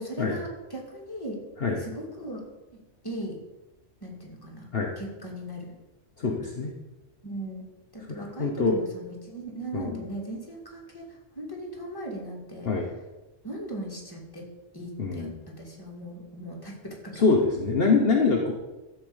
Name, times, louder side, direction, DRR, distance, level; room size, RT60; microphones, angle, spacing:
voice 1, 0.0-1.4 1.8-2.4 3.0-3.4 4.0-4.7 5.0-5.8 7.2-7.7 7.9-12.7 13.4-14.5 14.7-17.2, right 1 dB, 20° left, -2 dB, 2.5 m, -38 dB
voice 2, 6.2-6.7 8.1-8.8 9.7-10.0 12.6-12.9 15.0-15.4 17.1-18.5, left 4 dB, 55° left, 1 dB, 1.3 m, -24 dB
12.5 x 4.5 x 8.0 m, 1.1 s
omnidirectional pair, 1.2 m